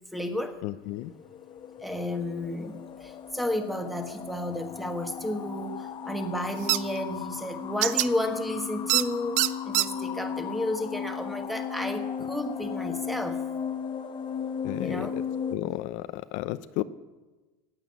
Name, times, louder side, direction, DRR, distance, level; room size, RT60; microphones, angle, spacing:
voice 1, 0.1-0.6 1.8-13.4 14.8-15.2, left 1 dB, ahead, 5 dB, 1.4 m, -32 dB
voice 2, 0.6-1.1 14.6-15.2 15.5-16.8, left 17 dB, 55° left, 12 dB, 0.6 m, -33 dB
sound 1, 0.9-15.6, left 7 dB, 30° left, 1.2 m, -36 dB
sound 2, 6.7-6.8 7.8-8.1 8.9-9.0 9.4-9.9, right 16 dB, 55° right, 0.6 m, -23 dB
15.0 x 9.1 x 9.5 m, 1.2 s
supercardioid pair, 140°, 15 cm